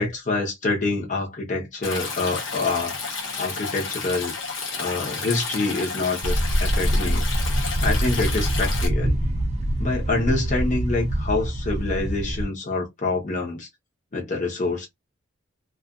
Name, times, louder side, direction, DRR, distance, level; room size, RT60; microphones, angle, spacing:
voice 1, 0.0-3.0 3.4-4.3 4.8-9.2 9.8-13.7 14.1-14.9, left 3 dB, 40° left, 0.9 m, -26 dB
Stream, 1.8-8.9, left 4 dB, 70° left, 0.9 m, -31 dB
sound 1, 6.2-12.4, right 1 dB, 30° right, 0.4 m, -24 dB
2.4 x 2.4 x 2.4 m
head